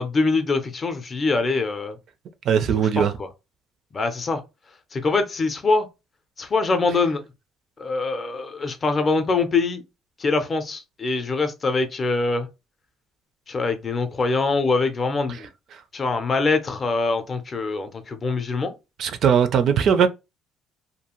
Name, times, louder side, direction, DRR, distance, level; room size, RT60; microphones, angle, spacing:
voice 1, 0.0-2.0 3.0-3.3 3.9-4.4 4.9-5.9 6.4-7.2 7.8-9.8 10.2-12.5 13.5-15.5 15.9-18.7, left 3 dB, 30° left, 0.5 m, -23 dB
voice 2, 2.5-3.1 19.0-20.1, right 7 dB, 50° right, 0.4 m, -19 dB
2.6 x 2.4 x 2.9 m
cardioid pair, 145°, 0 cm